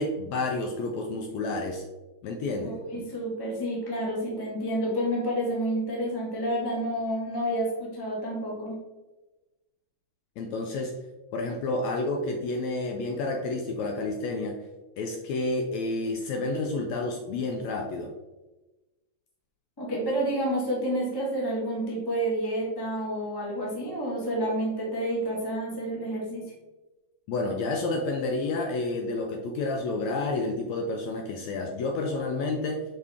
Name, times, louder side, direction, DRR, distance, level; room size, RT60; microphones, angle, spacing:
voice 1, 0.0-1.9 2.2-2.7 10.4-10.9 11.3-14.6 15.0-18.1 27.3-32.8, left 2 dB, 80° left, 2 dB, 1.6 m, -30 dB
voice 2, 2.6-8.8 19.8-26.4, right 1 dB, 35° left, -3 dB, 0.3 m, -29 dB
6.0 x 5.6 x 3.5 m, 1.1 s
omnidirectional pair, 3.7 m